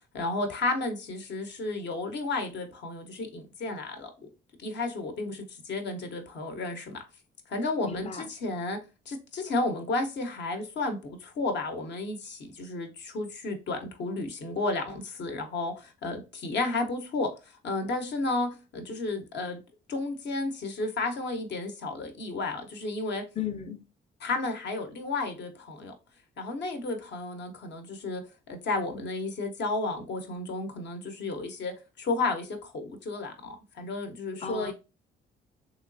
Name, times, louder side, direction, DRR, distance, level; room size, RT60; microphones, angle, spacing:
voice 1, 0.1-4.1 4.6-7.0 7.5-8.8 9.1-19.6 19.9-23.2 24.2-25.9 26.4-28.2 28.5-34.7, left 2 dB, 60° left, 0.8 m, -32 dB
voice 2, 7.8-8.3 23.4-23.8 34.4-34.7, left 8 dB, 30° left, 0.6 m, -35 dB
3.2 x 2.9 x 2.5 m
cardioid pair, 90°, 20 cm